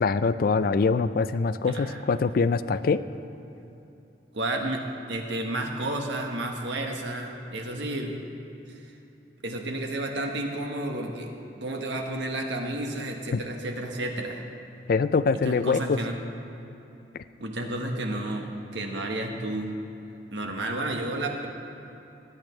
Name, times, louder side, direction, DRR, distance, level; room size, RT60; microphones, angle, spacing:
voice 1, 0.0-3.0 13.3-13.4 14.9-16.0, left 4 dB, 50° left, 14 dB, 0.3 m, -24 dB
voice 2, 1.6-2.0 4.3-8.1 8.7-8.9 9.4-11.3 11.6-14.4 15.4-16.2 17.4-19.7 20.3-21.5, right 1 dB, 75° right, 2 dB, 1.4 m, -31 dB
19.5 x 10.0 x 3.2 m, 2.9 s
head